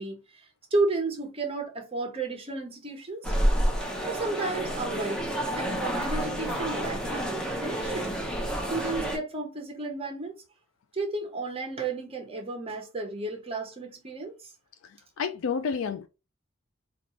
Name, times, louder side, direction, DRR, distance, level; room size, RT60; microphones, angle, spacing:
voice 1, 0.0-3.3 4.1-5.3 5.5-8.1 8.7-10.4 10.9-14.5, right 3 dB, 30° right, 0.8 m, -33 dB
sound 1, 3.2-9.2, equal, 5° left, 0.7 m, -29 dB
voice 2, 14.8-16.1, left 6 dB, 75° left, 0.4 m, -30 dB
4.1 x 2.4 x 3.0 m
head